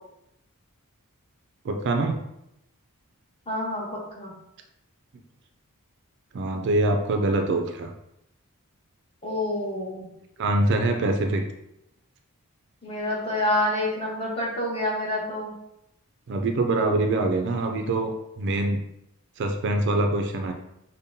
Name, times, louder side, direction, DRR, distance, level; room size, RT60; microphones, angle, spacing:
voice 1, 1.6-2.2 6.3-7.9 10.4-11.4 16.3-18.8 19.4-20.5, right 2 dB, 50° right, 4 dB, 0.4 m, -24 dB
voice 2, 3.5-4.3 9.2-10.1 12.8-15.5, left 1 dB, 25° left, -5 dB, 1.0 m, -28 dB
5.2 x 2.1 x 2.7 m, 0.83 s
head